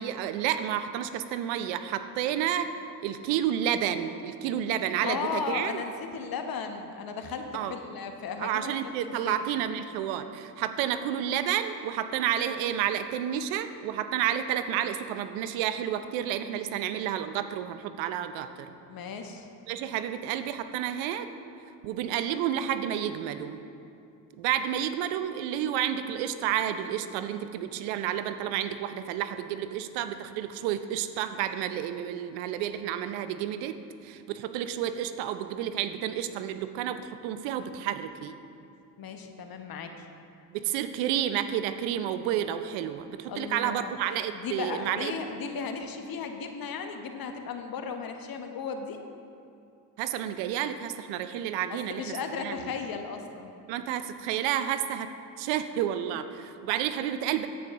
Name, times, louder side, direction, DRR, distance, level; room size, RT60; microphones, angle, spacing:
voice 1, 0.0-2.7 3.0-5.8 7.5-7.7 8.4-18.7 19.7-21.3 21.8-23.6 24.4-33.8 34.0-38.4 40.5-45.1 50.0-52.7 53.7-55.1 55.4-57.5, right 10 dB, 70° right, 10 dB, 0.7 m, -30 dB
voice 2, 5.0-9.6 18.9-19.5 39.0-40.1 43.3-44.0 44.3-49.0 51.7-53.5, left 5 dB, 50° left, 6 dB, 1.1 m, -36 dB
10.0 x 8.4 x 3.6 m, 2.6 s
hypercardioid pair, 65°, 47 cm